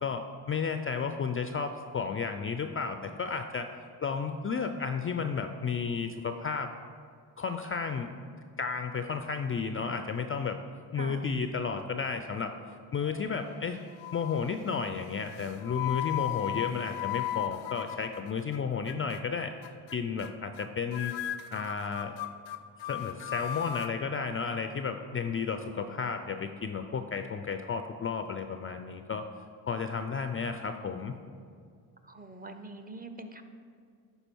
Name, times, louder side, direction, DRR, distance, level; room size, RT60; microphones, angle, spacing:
voice 1, 0.0-3.7 4.0-6.7 7.4-8.3 8.6-10.6 10.9-12.5 12.9-13.8 14.1-19.5 19.9-21.1 21.5-22.2 22.8-29.2 29.7-31.2, left 5 dB, 30° left, 7 dB, 0.4 m, -33 dB
voice 2, 11.0-11.3 32.0-33.4, right 2 dB, 20° right, 7 dB, 0.7 m, -44 dB
sound 1, 13.0-13.6 14.0-14.5 15.3-18.6 18.9-19.2 19.6-19.9 20.2-20.3 20.5-20.7 20.9-23.9, left 13 dB, 75° left, 0.6 m, -36 dB
11.0 x 4.0 x 4.5 m, 2.2 s
supercardioid pair, 60°, 47 cm